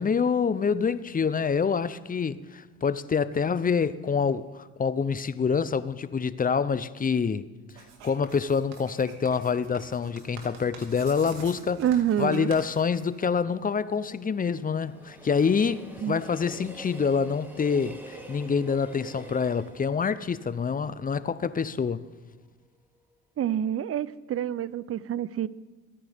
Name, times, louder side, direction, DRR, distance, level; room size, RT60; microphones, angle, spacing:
voice 1, 0.0-7.5 8.0-11.8 12.2-22.0, left 6 dB, 25° left, 0.7 m, -26 dB
Writing, 7.7-13.5, right 5 dB, 85° right, 2.2 m, -46 dB
voice 2, 11.8-12.5 16.0-16.2 23.4-25.5, right 10 dB, 40° right, 0.6 m, -27 dB
Train, 13.0-22.0 22.3-22.4, right 1 dB, 5° right, 2.5 m, -47 dB
22.5 x 10.0 x 3.6 m
supercardioid pair, 70°, 34 cm